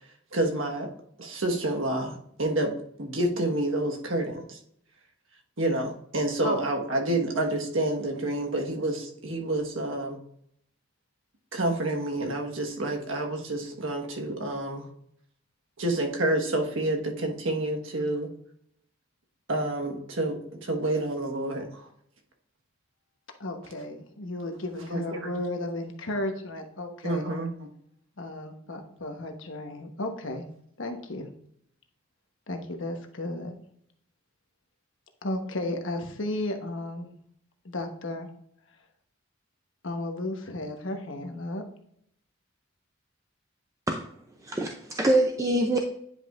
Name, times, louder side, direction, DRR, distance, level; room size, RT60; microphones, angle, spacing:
voice 1, 0.3-0.9 1.2-4.6 5.6-10.2 11.5-14.9 15.8-18.3 19.5-21.9 24.9-25.3 27.0-27.7, right 1 dB, 80° right, 1 dB, 1.4 m, -29 dB
voice 2, 23.4-27.3 28.2-30.5 30.8-31.3 32.5-33.6 35.2-37.1 37.6-38.3 39.8-41.6, left 1 dB, 70° left, 4 dB, 1.1 m, -34 dB
voice 3, 44.4-45.8, right 1 dB, 15° right, 3 dB, 0.5 m, -24 dB
9.8 x 5.3 x 2.5 m, 0.68 s
head